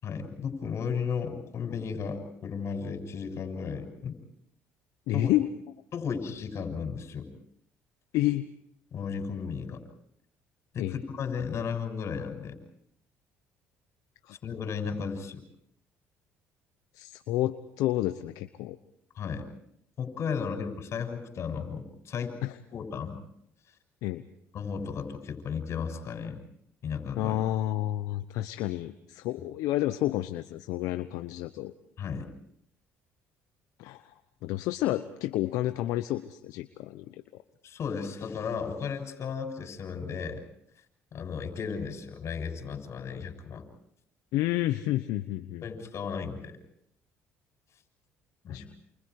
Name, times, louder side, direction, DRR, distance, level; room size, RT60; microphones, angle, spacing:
voice 1, 0.0-4.2 5.1-5.3 5.9-7.3 8.9-9.8 10.7-12.6 14.4-15.4 19.2-19.4 20.0-22.3 22.7-23.2 24.5-26.4 26.8-27.4 32.0-32.2 37.6-40.4 41.1-43.6 45.6-46.6 48.4-48.6, left 6 dB, 55° left, 5 dB, 6.7 m, -34 dB
voice 2, 5.1-5.5 8.1-8.5 10.8-11.0 14.3-14.4 16.9-18.8 22.4-22.5 24.0-24.2 27.2-31.7 33.8-34.1 34.4-37.2 44.3-45.6 48.5-48.6, left 15 dB, 80° left, 10 dB, 0.9 m, -30 dB
29.0 x 29.0 x 4.8 m, 0.74 s
supercardioid pair, 80°, 6 cm